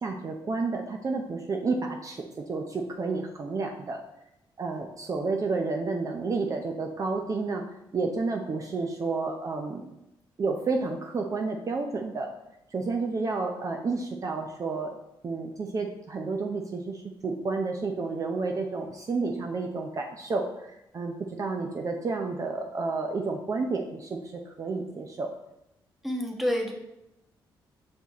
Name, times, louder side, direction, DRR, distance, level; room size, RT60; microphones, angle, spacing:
voice 1, 0.0-4.0 4.6-7.6 7.9-9.9 10.4-12.3 12.7-15.0 15.2-25.3, right 3 dB, 40° right, 2 dB, 0.7 m, -31 dB
voice 2, 26.0-26.7, equal, ahead, 0 dB, 1.3 m, -28 dB
6.0 x 4.4 x 4.1 m, 0.87 s
cardioid pair, 80°, 9 cm